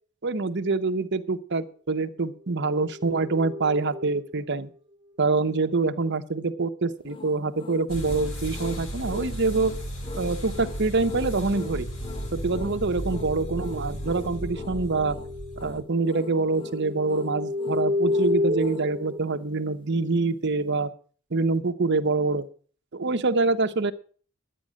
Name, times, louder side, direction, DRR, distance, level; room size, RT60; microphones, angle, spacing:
voice 1, 0.2-4.7 5.2-9.7 10.1-11.9 12.3-15.2 15.6-20.9 21.3-22.5 22.9-23.9, right 3 dB, 55° right, 9 dB, 0.9 m, -25 dB
sound 1, 2.8-4.3 12.1-15.7 16.0-19.2, left 2 dB, 25° right, 0.8 m, -31 dB
sound 2, 7.0-18.9, left 3 dB, 25° left, 0.7 m, -42 dB
sound 3, 7.9-15.8, equal, 75° left, 4.1 m, -35 dB
11.5 x 9.3 x 6.3 m, 0.43 s
head